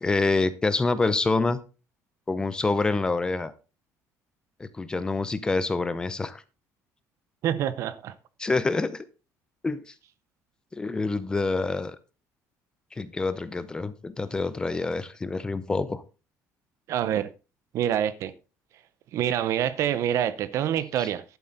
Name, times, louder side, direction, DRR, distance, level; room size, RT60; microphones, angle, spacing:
voice 1, 0.0-1.6 2.3-3.5 4.6-6.4 8.4-9.0 9.6-9.8 10.7-12.0 13.0-16.0 21.0-21.1, left 3 dB, 15° left, 0.6 m, -26 dB
voice 2, 7.4-8.1 16.9-17.3 17.7-18.3 19.1-21.2, right 10 dB, 50° right, 0.6 m, -26 dB
11.0 x 8.4 x 3.9 m
cardioid pair, 165°, 6 cm